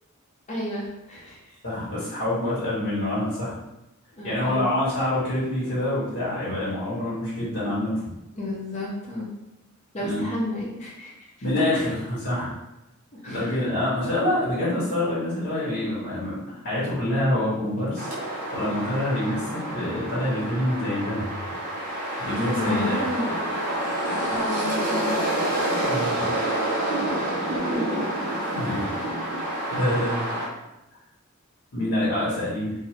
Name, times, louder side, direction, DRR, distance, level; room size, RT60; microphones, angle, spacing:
voice 1, 0.5-1.6 4.1-4.6 8.3-9.3 9.9-11.3 13.1-13.5 22.6-23.4 24.3-25.2 27.5-27.9, left 1 dB, 30° left, -5 dB, 0.6 m, -32 dB
voice 2, 1.6-3.6 4.2-8.1 10.0-10.2 11.4-12.6 13.3-21.4 22.2-23.1 25.8-26.3 28.5-29.0 29.7-30.3 31.7-32.7, left 1 dB, 55° left, -9 dB, 1.0 m, -26 dB
sound 1, 18.0-30.5, right 1 dB, 40° right, 0.7 m, -28 dB
2.8 x 2.1 x 3.2 m, 0.92 s
head